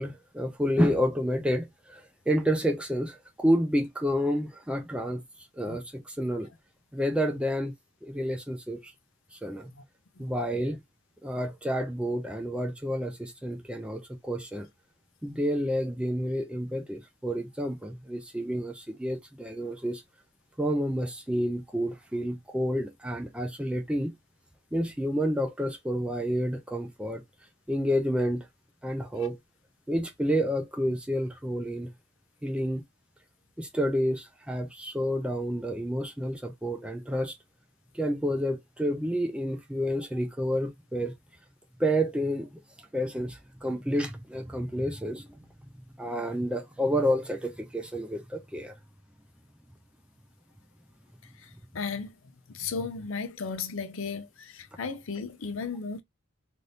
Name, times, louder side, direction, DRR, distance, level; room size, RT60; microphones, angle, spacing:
voice 1, 0.0-5.2 5.6-6.5 6.9-7.7 8.0-8.9 9.3-9.7 10.2-10.8 11.2-14.7 15.2-20.0 20.6-24.1 24.7-27.2 27.7-28.5 28.8-29.4 29.9-31.9 32.4-32.8 33.6-37.4 37.9-41.1 41.8-42.5 42.9-45.5 46.0-48.7, equal, 5° right, 0.4 m, -29 dB
voice 2, 10.2-10.5 29.2-29.3 51.2-52.2 52.5-56.0, left 5 dB, 65° left, 0.6 m, -36 dB
2.6 x 2.6 x 3.3 m
head